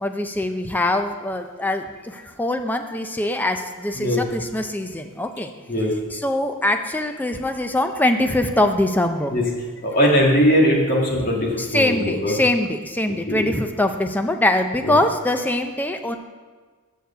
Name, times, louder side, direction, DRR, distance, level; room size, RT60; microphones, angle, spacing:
voice 1, 0.0-1.8 2.4-5.5 6.1-9.3 11.6-16.2, left 1 dB, 10° left, 6 dB, 0.5 m, -23 dB
voice 2, 9.8-12.3 13.3-13.5 14.8-15.0, equal, 40° left, -2 dB, 1.8 m, -20 dB
6.7 x 6.5 x 6.8 m, 1.4 s
head